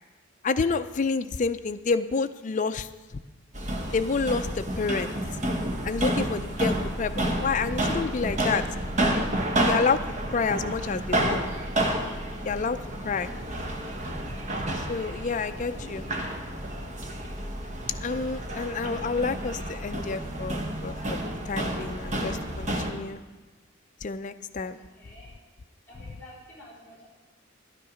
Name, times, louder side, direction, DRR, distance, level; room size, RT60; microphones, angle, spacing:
voice 1, 0.4-2.9 3.9-5.1 5.8-8.6 9.6-10.0 10.3-11.4 12.4-13.3 14.9-16.0 17.9-21.2 21.5-23.2 24.0-24.8, left 4 dB, 35° left, 10 dB, 0.4 m, -29 dB
sound 1, 3.5-22.9, right 1 dB, 35° right, 1.0 m, -30 dB
voice 2, 15.4-16.6 24.7-25.4 25.9-27.1, left 1 dB, 5° left, -11 dB, 3.7 m, -50 dB
11.5 x 9.9 x 5.0 m, 1.2 s
head